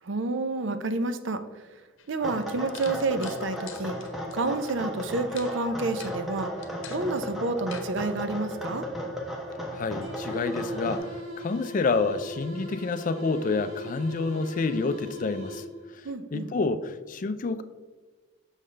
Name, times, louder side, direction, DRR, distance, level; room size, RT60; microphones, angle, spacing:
voice 1, 0.0-1.4 2.1-4.0 4.3-6.5 6.9-8.9 16.0-16.5, right 3 dB, 60° right, 10 dB, 0.5 m, -29 dB
sound 1, 2.0-2.1 2.7-4.7 5.4-5.5 6.0-6.2 6.6-7.1 7.7-7.9, left 7 dB, 70° left, 0.8 m, -44 dB
sound 2, 2.2-11.0, equal, ahead, 0.9 m, -35 dB
voice 2, 9.7-15.6 15.9-17.6, left 3 dB, 40° left, 11 dB, 0.4 m, -28 dB
sound 3, 10.0-16.0, equal, 85° right, 1.5 m, -39 dB
6.3 x 5.6 x 3.3 m, 1.4 s
head